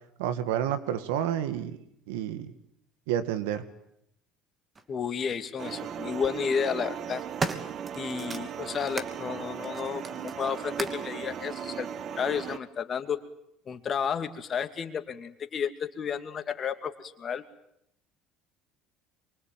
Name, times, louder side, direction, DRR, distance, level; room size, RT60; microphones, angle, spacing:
voice 1, 0.2-1.8 2.1-2.5 3.1-3.6, right 10 dB, 85° right, 11 dB, 2.1 m, -29 dB
sound 1, 4.8-4.9 6.0-6.3 6.9-9.2 9.6-11.1 12.0-12.1, right 4 dB, 30° right, 2.8 m, -36 dB
voice 2, 4.9-7.2 7.9-11.9 12.1-13.2 13.7-17.4, left 7 dB, 40° left, 8 dB, 2.6 m, -32 dB
sound 2, 5.6-12.6, right 8 dB, 50° right, 1.4 m, -37 dB
24.5 x 23.5 x 9.3 m, 0.76 s
supercardioid pair, 80°, 0 cm